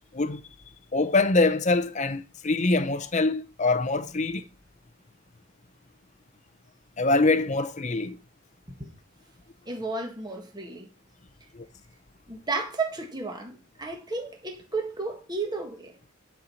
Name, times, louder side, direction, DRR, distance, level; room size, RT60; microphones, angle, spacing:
voice 1, 0.9-4.4 7.0-8.2 11.5-11.7, left 3 dB, 35° left, 0.7 m, -24 dB
voice 2, 9.6-10.9 12.3-15.9, right 3 dB, 20° right, 1.7 m, -33 dB
11.5 x 4.7 x 5.7 m
head